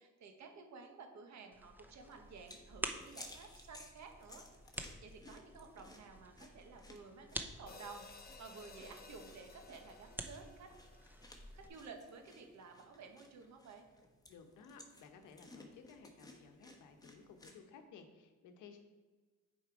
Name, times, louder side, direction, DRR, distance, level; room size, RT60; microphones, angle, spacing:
voice 1, 0.0-4.4 4.8-8.1 8.4-10.7 11.5-13.8, right 4 dB, 65° right, 4 dB, 1.2 m, -53 dB
sound 1, 1.5-11.7, right 1 dB, 5° right, 0.6 m, -49 dB
sound 2, 2.0-17.6, left 2 dB, 10° left, 1.1 m, -59 dB
sound 3, 7.7-12.0, left 4 dB, 30° left, 0.8 m, -58 dB
voice 2, 14.3-18.8, left 5 dB, 80° left, 6 dB, 0.9 m, -57 dB
7.2 x 4.5 x 4.7 m, 1.3 s
cardioid pair, 90°, 30 cm